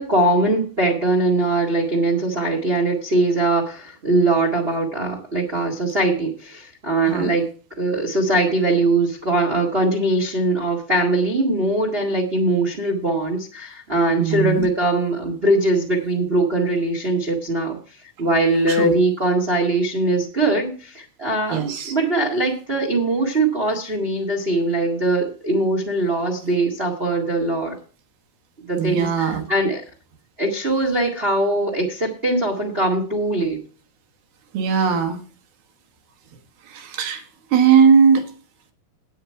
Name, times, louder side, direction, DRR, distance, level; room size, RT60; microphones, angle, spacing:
voice 1, 0.0-7.5 7.8-17.8 18.2-27.7 28.6-29.8 30.4-33.6, right 2 dB, 45° right, 0 dB, 0.7 m, -21 dB
voice 2, 14.2-14.7 18.7-19.0 21.5-21.9 28.8-29.4 34.5-35.2 36.7-37.2 37.5-38.3, right 6 dB, 70° right, 5 dB, 3.1 m, -18 dB
9.1 x 9.0 x 4.7 m, 0.38 s
omnidirectional pair, 4.9 m